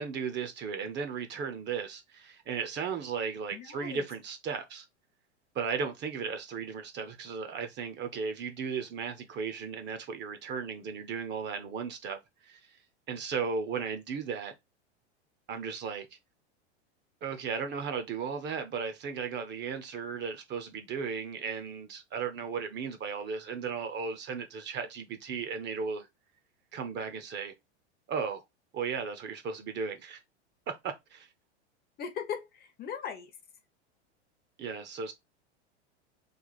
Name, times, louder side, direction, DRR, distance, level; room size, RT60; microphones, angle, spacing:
voice 1, 0.0-4.9 5.5-12.8 13.1-14.5 15.5-16.1 17.2-26.1 26.7-27.5 28.1-28.4 28.7-30.2 30.7-31.3 34.6-35.1, right 6 dB, 30° right, 0.7 m, -35 dB
voice 2, 3.5-4.0 32.0-33.3, left 7 dB, 30° left, 0.7 m, -38 dB
3.3 x 2.4 x 3.9 m
hypercardioid pair, 105°, 34 cm